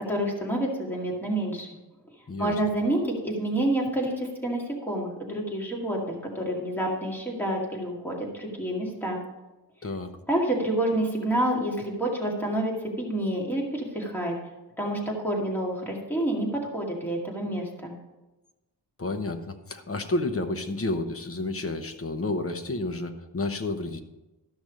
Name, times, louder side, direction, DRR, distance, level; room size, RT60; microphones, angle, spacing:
voice 1, 0.1-1.7 2.4-9.2 10.3-14.3 14.8-17.9, right 1 dB, 5° left, -2 dB, 2.2 m, -28 dB
voice 2, 19.0-24.0, left 2 dB, 30° left, 7 dB, 0.9 m, -30 dB
13.5 x 6.1 x 5.2 m, 1.0 s
wide cardioid pair, 130°, 43 cm